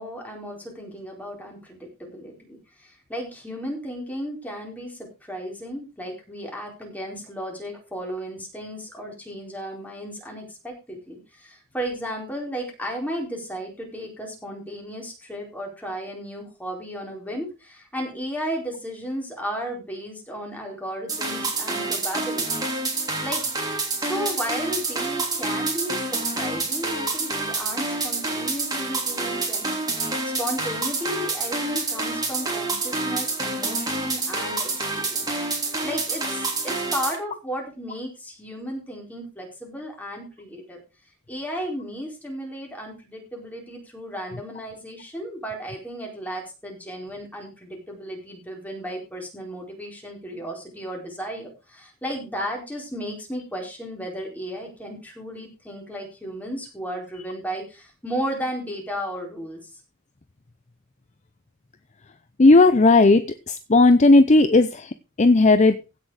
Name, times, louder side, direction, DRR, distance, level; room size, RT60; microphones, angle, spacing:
voice 1, 0.0-23.4 24.0-40.8 41.3-59.8, equal, 5° left, 0 dB, 4.5 m, -34 dB
sound 1, 21.1-37.2, right 3 dB, 20° right, 3.3 m, -27 dB
voice 2, 62.4-65.8, left 2 dB, 30° left, 12 dB, 0.6 m, -15 dB
16.0 x 6.4 x 4.9 m, 0.30 s
head